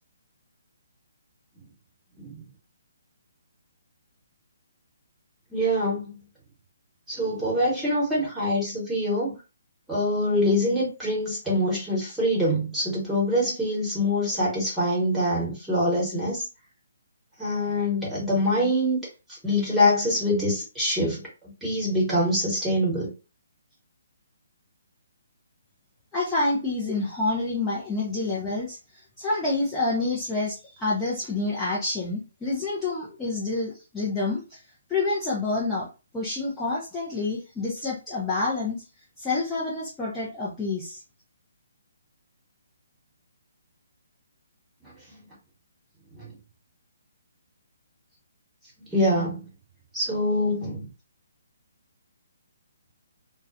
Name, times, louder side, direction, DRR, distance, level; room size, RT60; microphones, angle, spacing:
voice 1, 5.5-6.1 7.1-9.4 9.9-16.4 17.4-19.0 19.3-21.3 21.6-23.1 44.8-45.2 46.1-46.3 48.9-49.5 49.9-50.8, left 1 dB, 5° right, 1.2 m, -25 dB
voice 2, 26.1-34.6 34.9-35.9 36.1-38.8 39.2-41.0, left 3 dB, 10° left, 0.6 m, -28 dB
2.3 x 2.1 x 2.6 m
figure-of-eight pair, 135°, 0 cm